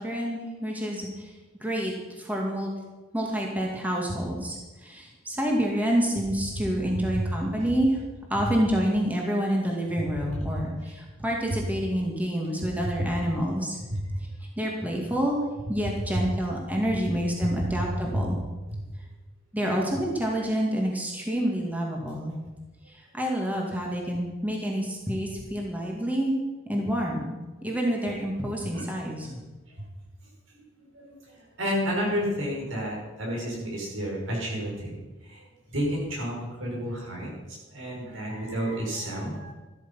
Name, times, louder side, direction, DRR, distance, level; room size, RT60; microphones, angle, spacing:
voice 1, 0.0-1.3 1.6-2.7 3.1-8.0 8.3-13.9 14.6-15.4 15.7-18.4 19.5-22.3 22.9-26.3 26.7-27.3 27.6-29.3, equal, 10° right, -1 dB, 2.2 m, -28 dB
voice 2, 10.0-10.4 13.0-13.1 13.9-14.1 16.1-16.2 17.4-17.7 18.1-18.2 18.7-18.8 28.7-28.8 29.2-29.4 29.8-29.9 30.5-30.6 30.9-39.5, equal, 80° right, -2 dB, 5.9 m, -31 dB
13.5 x 12.5 x 5.6 m, 1.2 s
head